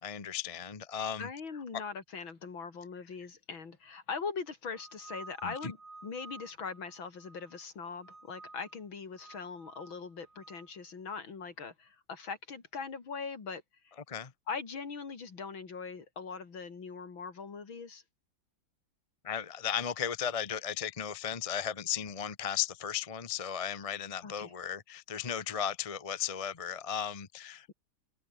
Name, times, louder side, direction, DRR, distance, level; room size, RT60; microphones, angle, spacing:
voice 1, 0.0-1.3 5.4-5.7 14.1-14.3 19.2-27.7, left 8 dB, 25° left, 0.8 m, -35 dB
voice 2, 1.2-5.8 6.0-13.9 14.5-18.0 24.2-24.5, left 5 dB, 70° left, 3.7 m, -41 dB
sound 1, 4.7-7.6 8.0-8.8 9.1-10.7, right 3 dB, 50° right, 5.0 m, -52 dB
omnidirectional pair, 2.3 m